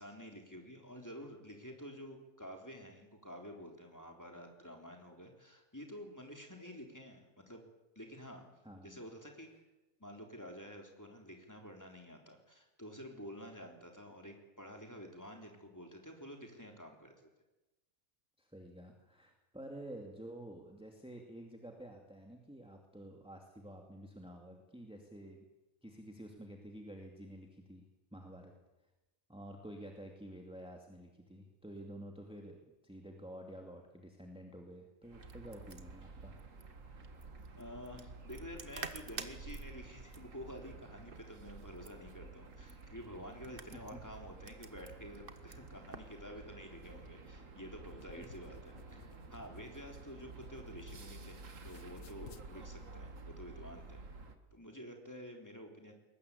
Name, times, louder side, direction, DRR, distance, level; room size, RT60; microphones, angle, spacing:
voice 1, 0.0-7.6 8.0-8.4 8.8-9.5 10.0-17.3 37.6-54.0 54.5-55.9, equal, 15° left, 2 dB, 3.7 m, -50 dB
voice 2, 8.6-9.0 18.4-25.5 25.8-27.9 28.1-28.5 29.3-32.6 32.8-36.4 43.4-44.0, right 1 dB, 5° right, 1 dB, 2.4 m, -50 dB
sound 1, 35.0-46.2, right 4 dB, 45° right, 1.6 m, -52 dB
sound 2, 35.1-54.4, right 3 dB, 75° right, 2.2 m, -51 dB
sound 3, 47.9-51.3 51.6-52.5, left 8 dB, 85° left, 1.5 m, -58 dB
22.0 x 19.5 x 8.4 m, 1.0 s
omnidirectional pair, 1.3 m